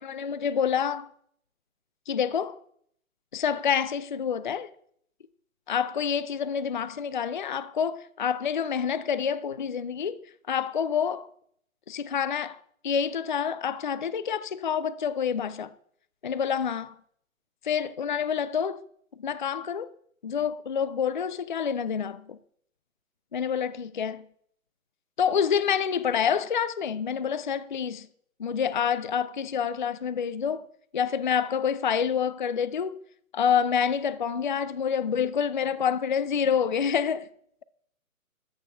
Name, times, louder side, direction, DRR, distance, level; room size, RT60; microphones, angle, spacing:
voice 1, 0.1-1.1 2.1-2.6 3.3-4.7 5.7-10.2 10.5-11.3 11.9-15.7 16.2-16.9 17.6-18.8 19.2-19.9 20.2-22.4 23.3-24.2 25.2-28.1 28.4-30.7 30.9-33.0 33.3-37.3, left 7 dB, 35° left, 0.4 m, -27 dB
13.5 x 6.9 x 5.9 m
figure-of-eight pair, 135°, 42 cm